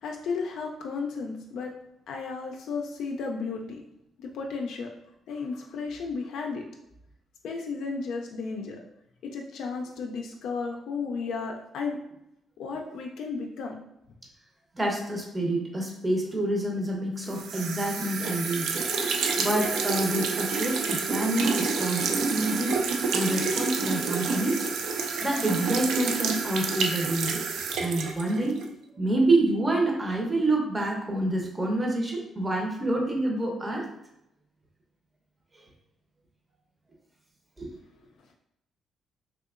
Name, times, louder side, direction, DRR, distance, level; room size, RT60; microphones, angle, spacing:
voice 1, 0.0-1.7 2.1-3.8 4.2-4.9 5.3-6.7 7.4-8.8 9.2-12.0 12.6-13.8, left 4 dB, 75° left, 1 dB, 0.3 m, -33 dB
voice 2, 14.7-18.8 19.4-22.8 23.1-24.7 25.2-27.4 27.8-28.6 28.9-33.9 37.6-37.8, right 1 dB, 20° right, 0 dB, 0.7 m, -27 dB
sound 1, 17.3-28.7, right 4 dB, 75° right, 0.3 m, -29 dB
3.4 x 2.7 x 2.4 m, 0.83 s
cardioid pair, 90°, 0 cm